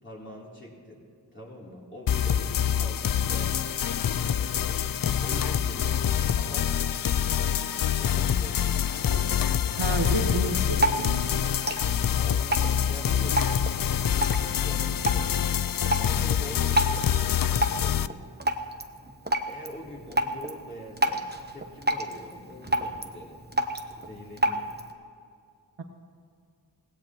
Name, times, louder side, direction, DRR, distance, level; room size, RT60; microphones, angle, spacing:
voice 1, 0.0-1.0 1.3-3.6 4.0-4.8 5.2-6.0 6.3-6.7 8.0-8.9 11.8-13.4 13.7-15.5 15.9-18.3 19.5-23.4 24.0-24.8, left 1 dB, 25° left, -6 dB, 3.3 m, -44 dB
sound 1, 2.1-18.1, left 9 dB, 55° left, 0.4 m, -26 dB
Cricket, 3.1-16.6, left 3 dB, 80° left, 1.3 m, -48 dB
voice 2, 9.8-11.3 16.2-16.3, right 2 dB, 80° right, 3 dB, 1.5 m, -30 dB
Drip, 10.4-24.9, right 1 dB, 25° right, 1.0 m, -31 dB
18.5 x 16.5 x 3.1 m, 2.3 s
wide cardioid pair, 45°, 43 cm